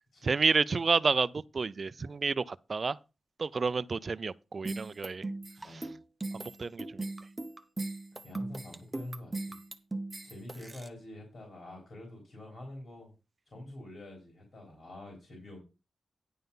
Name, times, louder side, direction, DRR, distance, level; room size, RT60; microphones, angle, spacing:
voice 1, 0.2-3.0 3.4-5.2 5.7-5.9 6.3-7.1, right 4 dB, 45° right, 0.4 m, -30 dB
sound 1, 4.6-10.9, right 2 dB, 15° right, 0.9 m, -38 dB
voice 2, 5.6-6.0 8.2-9.6 10.2-13.1 13.5-15.6, left 1 dB, 60° left, 3.8 m, -46 dB
10.5 x 5.7 x 5.4 m
wide cardioid pair, 155°, 0 cm